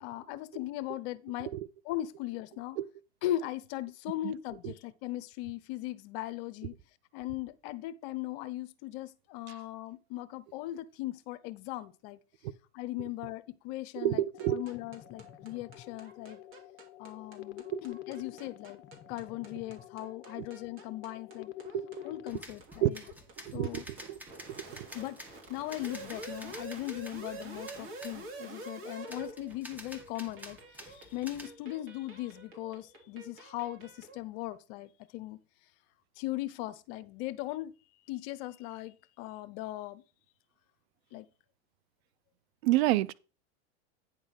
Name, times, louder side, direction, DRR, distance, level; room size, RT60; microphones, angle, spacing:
voice 1, 0.0-1.5 1.8-2.8 3.2-6.8 7.1-12.2 12.7-14.2 14.5-16.4 17.0-18.8 19.1-21.5 22.0-23.0 23.5-23.8 24.9-35.4 36.2-37.7 38.1-40.0 41.1-41.3 42.8-42.9, left 15 dB, 55° left, 0.8 m, -39 dB
voice 2, 14.0-14.6 17.7-17.8 20.4-20.5 21.7-22.0 22.8-22.9 23.5-23.8 24.1-24.2 24.7-24.9 42.6-43.1, right 15 dB, 65° right, 0.6 m, -29 dB
sound 1, 14.3-22.3, left 13 dB, 35° left, 1.1 m, -48 dB
sound 2, 14.4-34.2, right 2 dB, 35° right, 3.0 m, -48 dB
sound 3, 22.3-28.3 29.1-31.5, equal, 5° right, 1.9 m, -49 dB
9.5 x 3.8 x 6.5 m
hypercardioid pair, 110°, 35 cm